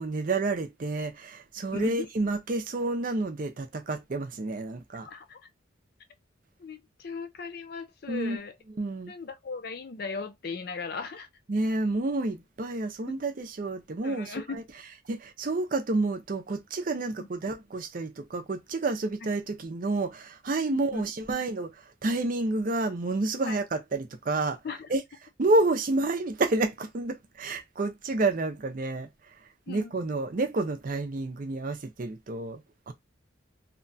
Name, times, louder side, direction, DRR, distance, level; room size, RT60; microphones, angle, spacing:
voice 1, 0.0-5.1 8.1-8.4 8.7-9.1 11.5-14.6 15.1-21.7 22.0-24.6 24.9-25.0 25.4-29.1 29.7-32.6 32.9-33.0, right 2 dB, 45° right, 0.5 m, -29 dB
voice 2, 1.7-2.1 5.0-5.4 6.6-8.5 9.1-11.3 14.0-14.6 17.2-17.3 19.2-19.3 20.7-21.0 23.5-23.6 24.6-24.9 29.7-29.9, left 4 dB, 50° left, 0.4 m, -37 dB
2.8 x 2.2 x 2.6 m
head